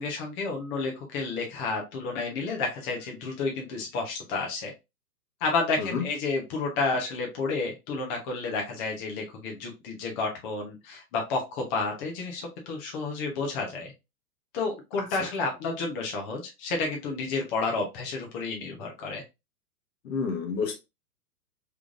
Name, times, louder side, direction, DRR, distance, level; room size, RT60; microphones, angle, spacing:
voice 1, 0.0-4.7 5.4-13.9 14.5-19.2, left 3 dB, 30° left, 1.0 m, -31 dB
voice 2, 15.0-15.3 20.0-20.8, left 5 dB, 60° left, 1.3 m, -30 dB
3.6 x 3.5 x 2.5 m
hypercardioid pair, 125°, 47 cm